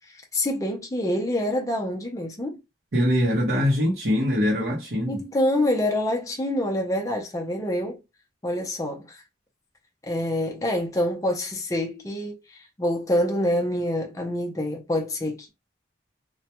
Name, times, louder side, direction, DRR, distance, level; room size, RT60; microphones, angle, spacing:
voice 1, 0.1-2.6 5.1-8.0 8.4-9.2 10.0-15.5, left 1 dB, 20° left, 0.4 m, -26 dB
voice 2, 2.9-5.2, equal, 60° right, 0.7 m, -23 dB
2.2 x 2.1 x 2.8 m
head